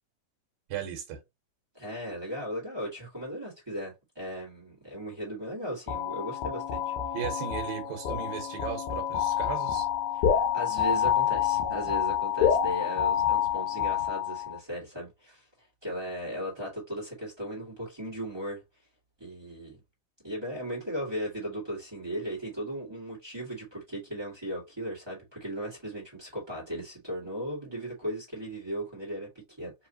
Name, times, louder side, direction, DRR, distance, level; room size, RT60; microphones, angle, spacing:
voice 1, 0.7-1.2 7.1-9.9, right 9 dB, 65° right, 2.0 m, -36 dB
voice 2, 1.7-6.9 10.1-15.5 15.8-18.6 19.2-19.8 20.2-29.7, equal, 15° right, 0.8 m, -37 dB
sound 1, 5.9-14.6, left 9 dB, 75° left, 1.9 m, -28 dB
4.7 x 3.1 x 2.8 m
omnidirectional pair, 3.7 m